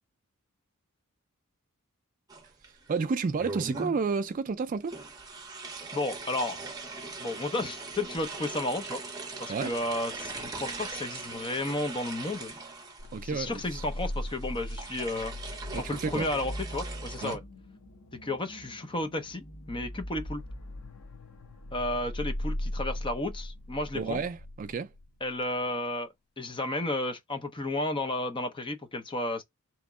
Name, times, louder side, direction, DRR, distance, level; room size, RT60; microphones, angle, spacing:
sound 1, 2.3-3.0 3.4-4.1 4.9-17.4, right 3 dB, 15° right, 0.8 m, -41 dB
voice 1, 2.9-5.0 9.5-9.7 13.1-13.8 15.7-16.3 17.2-17.4 23.9-24.9, right 5 dB, 35° right, 0.3 m, -31 dB
voice 2, 5.9-6.6 7.2-9.0 9.4-12.5 13.2-15.3 15.7-17.4 18.2-20.4 21.7-24.2 25.2-26.1 26.4-29.4, left 2 dB, 20° left, 0.7 m, -32 dB
sound 2, 13.0-25.6, left 1 dB, 70° left, 0.9 m, -39 dB
3.5 x 3.0 x 3.6 m
head